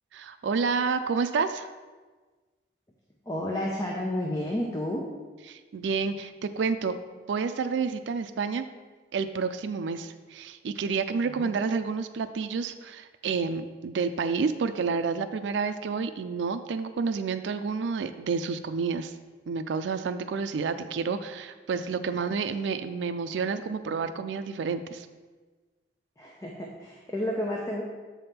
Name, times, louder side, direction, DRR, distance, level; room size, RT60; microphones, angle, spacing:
voice 1, 0.1-1.7 5.5-7.0 7.3-8.6 9.1-19.1 19.5-25.1, right 5 dB, 85° right, 10 dB, 0.4 m, -29 dB
voice 2, 3.3-5.1 11.4-11.5 26.2-27.8, left 1 dB, 20° left, -1 dB, 0.6 m, -31 dB
7.6 x 3.5 x 5.7 m, 1.3 s
head